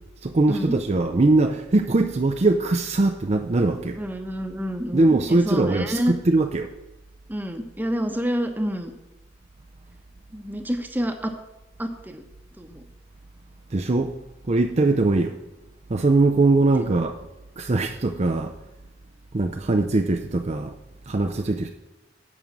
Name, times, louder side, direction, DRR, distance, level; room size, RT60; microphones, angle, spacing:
voice 1, 0.2-4.0 4.9-6.7 13.7-14.1 14.5-15.4 15.9-17.2 17.6-18.5 19.3-20.7 21.1-21.7, right 2 dB, 35° right, 6 dB, 0.5 m, -21 dB
voice 2, 4.0-6.1 7.3-8.9 10.3-11.3 11.8-12.2 12.6-12.8, equal, 10° right, 6 dB, 0.9 m, -28 dB
11.0 x 5.2 x 7.4 m, 0.98 s
head